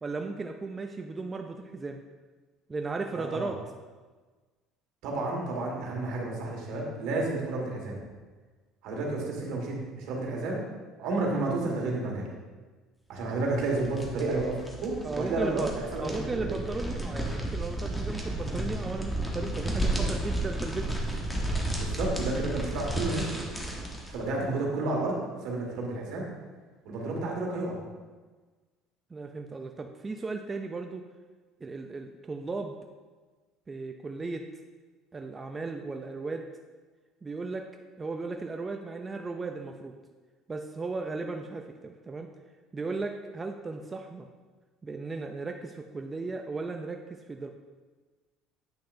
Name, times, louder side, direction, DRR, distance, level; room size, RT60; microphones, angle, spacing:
voice 1, 0.0-2.0 2.7-3.6 15.0-15.7 16.0-21.0 29.1-31.0 31.6-32.7 33.7-34.5 35.1-36.5 37.2-37.7 38.0-39.9 40.5-42.3 42.7-44.3 44.8-47.5, right 3 dB, 20° right, 4 dB, 0.4 m, -36 dB
voice 2, 3.1-3.5 5.0-8.0 8.8-10.6 11.0-12.3 13.1-16.6 21.7-23.5 24.1-26.3 26.8-27.8, right 2 dB, 70° right, -1 dB, 1.7 m, -31 dB
sound 1, 13.5-24.2, right 1 dB, 5° left, 1.0 m, -32 dB
8.6 x 5.7 x 2.6 m, 1.3 s
cardioid pair, 125°, 0 cm